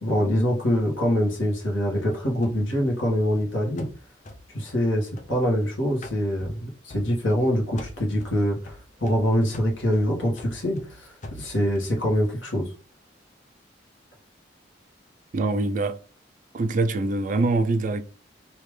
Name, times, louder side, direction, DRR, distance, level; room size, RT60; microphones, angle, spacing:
voice 1, 0.0-3.9 4.5-8.7 9.0-11.1 11.4-12.7, equal, 90° left, 1.5 m, -24 dB
sound 1, 2.4-5.7 6.0-7.5 7.8-11.9, left 1 dB, 40° left, 0.6 m, -44 dB
voice 2, 15.3-16.0 16.5-18.0, right 3 dB, 45° right, 0.4 m, -24 dB
3.5 x 2.8 x 3.2 m
head